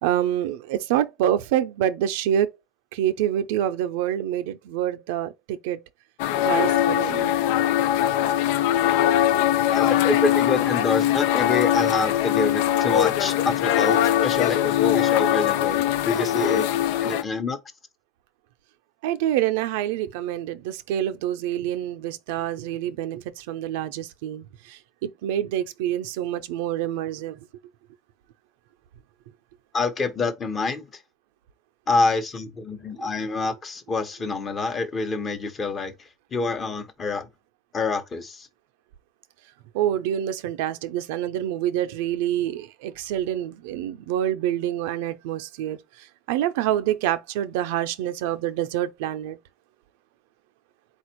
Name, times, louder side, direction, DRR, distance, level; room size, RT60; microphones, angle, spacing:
voice 1, 0.0-2.5 2.9-5.8 6.5-7.3 19.0-27.4 33.0-33.1 39.7-49.4, right 11 dB, 90° right, 0.6 m, -27 dB
sound 1, 6.2-17.2, left 11 dB, 80° left, 0.5 m, -21 dB
voice 2, 9.7-16.7 17.0-17.6 29.7-30.8 31.9-37.3 37.7-38.5, left 3 dB, 25° left, 1.0 m, -27 dB
4.3 x 2.4 x 4.4 m
cardioid pair, 140°, 0 cm